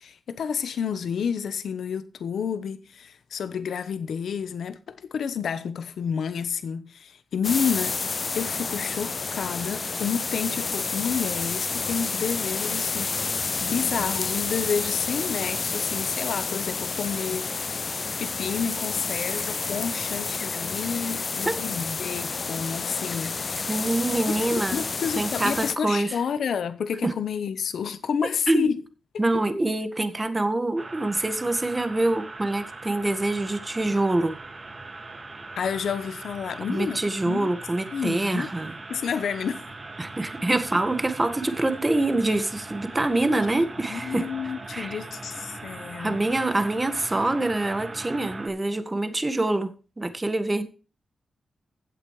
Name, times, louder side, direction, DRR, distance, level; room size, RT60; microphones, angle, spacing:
voice 1, 0.0-8.0 8.3-13.3 13.6-17.5 18.2-23.7 24.3-28.8 35.6-37.5 37.9-38.5 38.9-39.6 43.9-46.3, left 7 dB, 90° left, 1.1 m, -30 dB
sound 1, 7.4-25.7, left 4 dB, 45° left, 0.5 m, -30 dB
voice 2, 23.7-24.9 25.2-26.2 27.0-27.1 28.5-28.7 29.2-34.4 36.7-38.7 40.0-44.3 44.7-45.0 46.0-50.6, right 2 dB, 20° right, 1.7 m, -25 dB
sound 2, 30.8-48.5, right 3 dB, 40° right, 2.0 m, -40 dB
16.0 x 8.2 x 3.3 m
cardioid pair, 90°, 0 cm